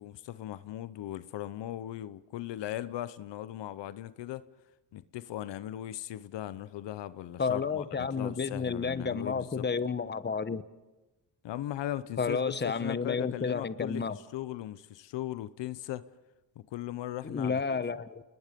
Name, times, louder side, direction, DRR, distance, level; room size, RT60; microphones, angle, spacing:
voice 1, 0.0-4.4 4.9-9.6 11.4-16.0 16.6-17.6, left 13 dB, 80° left, 0.9 m, -38 dB
voice 2, 7.4-10.6 12.2-14.2 17.2-18.2, left 5 dB, 25° left, 1.1 m, -31 dB
29.5 x 21.0 x 5.3 m
cardioid pair, 80°, 42 cm